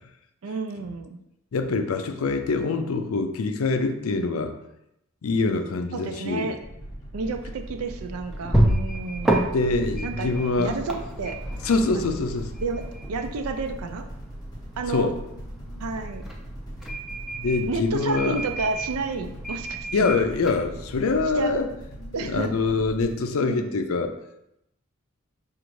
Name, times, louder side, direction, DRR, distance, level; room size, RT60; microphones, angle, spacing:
voice 1, 0.4-1.2 5.9-6.6 7.1-9.4 10.0-10.3 10.6-11.4 11.9-12.1 12.6-12.8 13.1-14.1 14.8-15.1 15.8-16.2 17.7-20.1 21.4-21.6 22.1-22.5 23.4-23.8, right 4 dB, 85° right, 7 dB, 0.4 m, -31 dB
voice 2, 1.5-4.5 5.2-6.5 9.5-10.7 11.6-12.5 14.9-15.1 15.6-15.8 17.4-18.4 19.9-21.7 22.2-24.1, left 3 dB, 75° left, 7 dB, 0.4 m, -25 dB
sound 1, 6.6-23.2, right 1 dB, 20° left, 0.8 m, -40 dB
sound 2, 7.2-21.6, right 1 dB, ahead, 0.4 m, -31 dB
5.0 x 2.5 x 3.1 m, 0.84 s
head